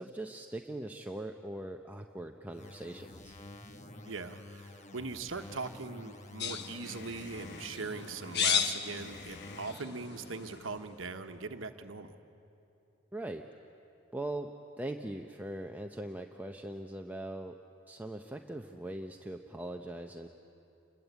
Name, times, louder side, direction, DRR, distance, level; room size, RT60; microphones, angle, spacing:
voice 1, 0.0-3.4 13.1-13.4 14.1-14.5 14.8-17.6 17.9-20.3, right 1 dB, 10° right, 3 dB, 0.7 m, -41 dB
sound 1, 2.5-9.9, left 2 dB, 35° left, 1.4 m, -50 dB
voice 2, 4.1-12.2, right 4 dB, 75° right, 7 dB, 1.2 m, -41 dB
sound 2, 6.4-10.9, left 7 dB, 60° left, 1.2 m, -35 dB
28.5 x 22.0 x 8.2 m, 2.8 s
head